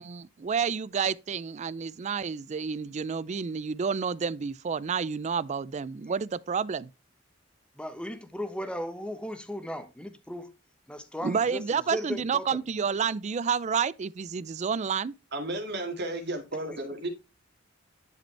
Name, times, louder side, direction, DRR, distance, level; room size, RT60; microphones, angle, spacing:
voice 1, 0.0-6.9 11.2-15.1, right 6 dB, 35° right, 0.4 m, -30 dB
voice 2, 7.7-10.5 10.9-12.6 16.7-17.0, equal, 5° left, 1.0 m, -37 dB
voice 3, 15.3-17.1, right 1 dB, 60° right, 2.1 m, -33 dB
10.5 x 5.2 x 3.3 m
head